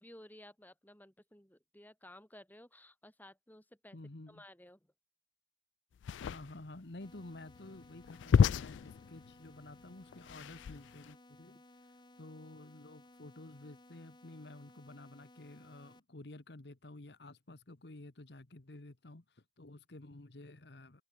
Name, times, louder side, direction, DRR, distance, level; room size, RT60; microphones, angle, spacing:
voice 1, 0.0-4.0 4.3-4.9 11.4-11.6, left 1 dB, 10° left, 3.9 m, -56 dB
voice 2, 3.9-4.4 6.2-11.6 12.2-21.0, left 2 dB, 65° left, 1.3 m, -51 dB
sound 1, 6.0-11.1, left 6 dB, 90° left, 0.3 m, -32 dB
sound 2, 7.0-16.0, left 1 dB, 25° left, 1.5 m, -60 dB
head